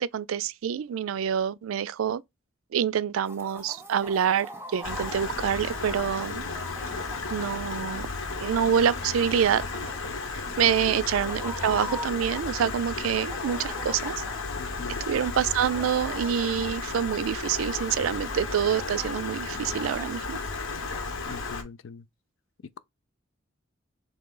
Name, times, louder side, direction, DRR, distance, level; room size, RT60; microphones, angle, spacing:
voice 1, 0.0-2.2 2.7-6.4 7.3-8.1 8.4-9.6 10.6-14.1 15.1-20.4, right 8 dB, 85° right, 0.4 m, -26 dB
Chicken rooster, 3.2-21.0, equal, 10° right, 0.6 m, -44 dB
Stream, 4.8-21.6, left 4 dB, 90° left, 1.2 m, -34 dB
voice 2, 10.6-11.0 14.6-15.0 21.3-22.1, left 5 dB, 70° left, 0.5 m, -42 dB
3.8 x 3.1 x 3.7 m
head